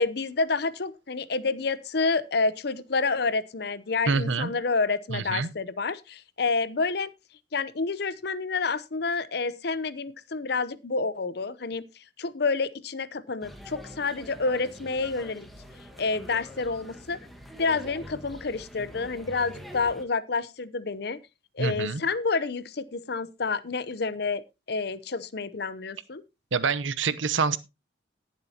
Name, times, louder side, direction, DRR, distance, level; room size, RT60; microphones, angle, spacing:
voice 1, 0.0-7.1 7.5-11.8 12.2-15.5 16.0-17.2 17.6-21.2 21.6-24.4 24.7-26.2, left 4 dB, 60° left, 17 dB, 0.7 m, -29 dB
voice 2, 4.1-4.5 5.1-5.5 21.6-22.0 26.5-27.6, right 5 dB, 80° right, 15 dB, 0.8 m, -26 dB
sound 1, 13.4-20.0, equal, ahead, 1.5 m, -45 dB
19.0 x 7.5 x 2.8 m, 0.25 s
head